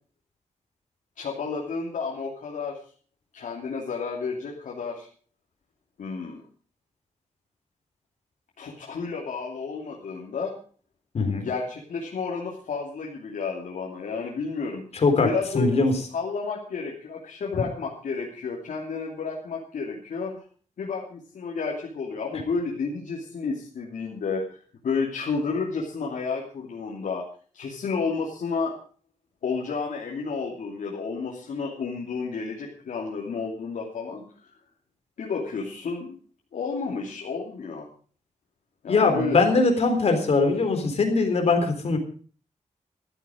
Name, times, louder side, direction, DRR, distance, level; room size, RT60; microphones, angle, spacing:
voice 1, 1.2-2.8 3.3-5.1 6.0-6.4 8.6-10.5 11.4-14.8 15.2-15.8 16.1-20.4 20.8-27.2 27.5-28.8 29.4-34.2 35.2-36.2 36.5-37.9 38.8-39.4, left 4 dB, 90° left, -2 dB, 2.8 m, -31 dB
voice 2, 11.1-11.5 14.9-15.3 15.5-15.9 38.9-42.0, left 3 dB, 55° left, 5 dB, 3.7 m, -21 dB
14.5 x 12.5 x 5.1 m, 0.43 s
wide cardioid pair, 150°, 13 cm